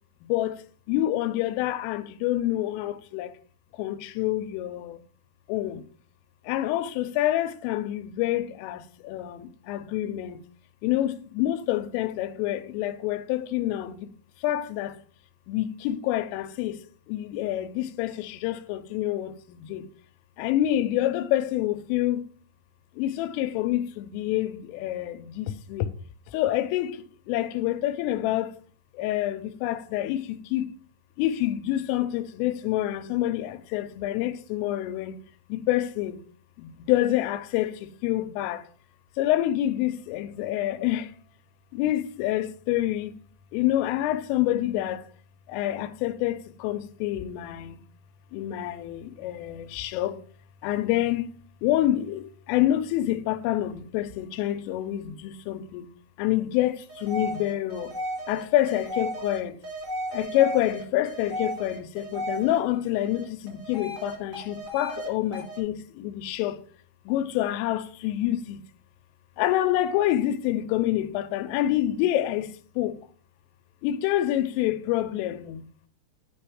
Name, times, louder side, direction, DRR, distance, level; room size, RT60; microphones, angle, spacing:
voice 1, 0.2-0.6 0.9-3.3 3.7-5.0 5.5-5.8 6.4-10.4 10.8-14.1 14.4-15.0 15.5-16.8 17.1-19.9 20.4-22.2 23.0-25.9 26.3-28.6 28.9-30.7 31.2-35.2 35.5-36.2 36.6-38.6 39.2-41.1 41.7-43.1 43.5-45.1 45.5-47.8 48.3-50.2 50.6-51.3 51.6-55.9 56.2-57.9 58.3-59.6 60.1-66.6 67.1-68.6 69.4-73.0 73.8-75.7, left 13 dB, 90° left, 3.2 m, -27 dB
sound 1, 56.9-62.6 63.0-65.1 65.3-65.6, equal, 50° right, 0.9 m, -35 dB
9.7 x 3.5 x 4.9 m
omnidirectional pair, 5.7 m